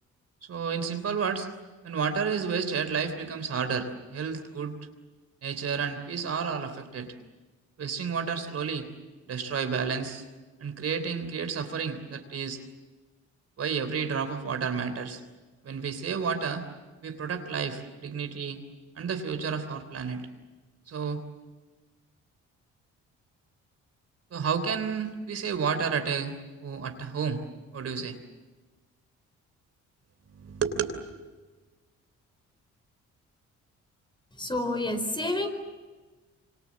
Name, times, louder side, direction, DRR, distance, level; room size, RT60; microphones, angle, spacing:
voice 1, 0.4-1.5 1.8-4.8 5.4-7.1 7.8-8.9 9.3-10.2 10.6-12.6 13.6-15.2 15.6-16.6 17.0-18.6 18.9-20.2 20.9-21.2 24.3-26.3 26.6-27.4 27.7-28.2 30.4-31.0, right 6 dB, 55° right, 7 dB, 3.3 m, -31 dB
voice 2, 34.4-35.5, left 1 dB, 15° left, 7 dB, 4.7 m, -29 dB
26.5 x 25.5 x 7.5 m, 1.3 s
cardioid pair, 90°, 30 cm